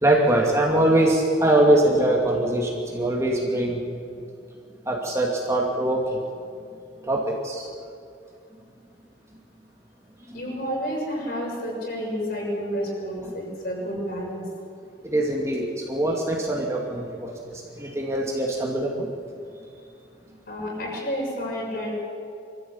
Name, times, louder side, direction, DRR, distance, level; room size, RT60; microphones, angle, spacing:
voice 1, 0.0-3.8 4.9-6.2 7.0-7.7 10.3-10.4 15.0-19.1, right 1 dB, 15° right, -2 dB, 2.5 m, -22 dB
voice 2, 10.3-14.4 20.5-21.9, equal, 55° left, -3 dB, 7.2 m, -30 dB
25.5 x 14.0 x 8.7 m, 2.5 s
head